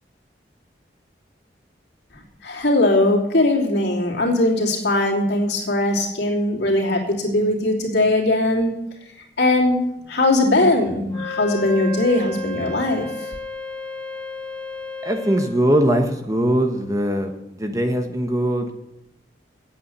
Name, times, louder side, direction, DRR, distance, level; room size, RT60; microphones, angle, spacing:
voice 1, 2.4-8.7 9.4-9.8 10.1-13.1, left 2 dB, 75° left, -2 dB, 3.0 m, -20 dB
Wind instrument woodwind instrument, 11.1-15.6, left 3 dB, 10° left, 1.4 m, -32 dB
voice 2, 15.0-17.3 17.6-18.7, right 1 dB, 20° right, 5 dB, 1.1 m, -21 dB
8.6 x 8.6 x 8.0 m, 0.86 s
head